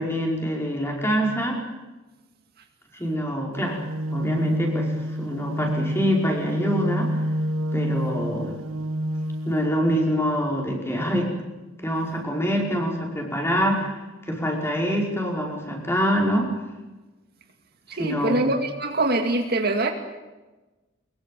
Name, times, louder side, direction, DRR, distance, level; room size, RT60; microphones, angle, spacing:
voice 1, 0.0-1.6 2.9-3.8 4.1-7.2 7.7-8.6 9.4-11.3 11.8-13.9 14.3-16.5 18.0-18.4, equal, 15° left, 0 dB, 5.2 m, -25 dB
sound 1, 3.5-9.5, equal, 90° right, 1.3 m, -28 dB
voice 2, 17.9-19.9, right 2 dB, 50° right, 5 dB, 2.3 m, -24 dB
23.0 x 22.5 x 7.6 m, 1.1 s
head